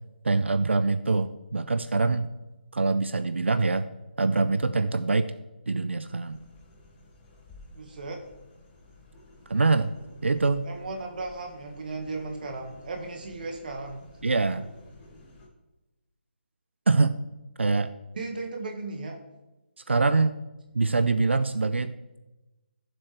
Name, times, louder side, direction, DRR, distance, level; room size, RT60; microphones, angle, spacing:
voice 1, 0.2-2.3 2.7-3.9 4.2-5.3 5.7-6.4 9.5-9.9 10.2-10.7 14.2-14.7 16.9-17.1 17.6-17.9 19.9-20.4 20.7-21.9, right 3 dB, 90° right, 11 dB, 0.6 m, -24 dB
sound 1, 6.2-15.5, left 2 dB, 20° left, 2.1 m, -52 dB
voice 2, 7.8-8.2 10.7-14.0 18.1-19.2, right 3 dB, 50° right, 3 dB, 1.7 m, -36 dB
14.5 x 7.6 x 3.4 m, 1.0 s
figure-of-eight pair, 160°, 6 cm